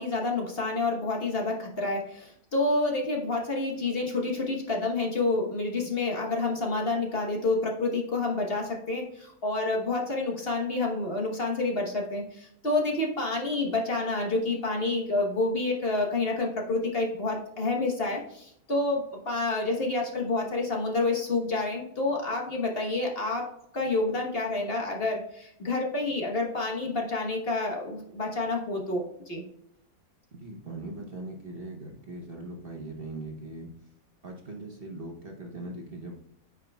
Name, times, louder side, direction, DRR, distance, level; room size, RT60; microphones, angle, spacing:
voice 1, 0.0-23.5 23.7-29.4, left 2 dB, 40° left, 0 dB, 1.3 m, -28 dB
voice 2, 30.3-33.7 34.2-36.1, right 2 dB, 40° right, 1 dB, 1.1 m, -40 dB
9.0 x 5.1 x 2.3 m, 0.74 s
omnidirectional pair, 1.6 m